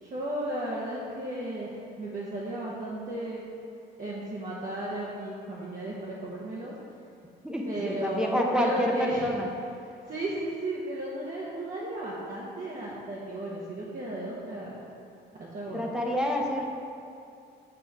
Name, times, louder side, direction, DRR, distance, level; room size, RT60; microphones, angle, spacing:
voice 1, 0.0-3.4 4.0-6.7 7.7-9.3 10.1-14.8 15.4-15.8, right 1 dB, 40° right, -6 dB, 0.9 m, -34 dB
voice 2, 7.4-9.5 15.7-16.6, left 1 dB, 5° right, -1 dB, 0.7 m, -28 dB
6.9 x 3.2 x 5.3 m, 2.5 s
cardioid pair, 90°, 20 cm